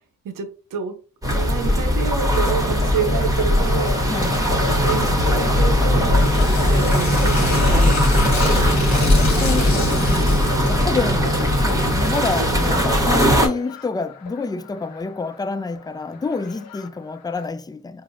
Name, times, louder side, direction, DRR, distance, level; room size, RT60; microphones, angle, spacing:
voice 1, 0.2-1.0 1.3-4.0 4.7-6.1 6.4-8.1 8.4-8.6 9.4-10.3, right 7 dB, 75° right, 0.7 m, -28 dB
sound 1, 1.2-13.5, left 1 dB, 10° right, 1.1 m, -19 dB
sound 2, 2.6-17.4, left 5 dB, 85° left, 0.5 m, -35 dB
voice 2, 4.1-4.5 9.4-10.2 10.7-11.3 11.5-18.0, left 4 dB, 15° left, 0.3 m, -28 dB
Tearing, 6.1-10.9, left 4 dB, 55° left, 1.2 m, -31 dB
4.6 x 2.1 x 2.6 m
supercardioid pair, 50°, 33 cm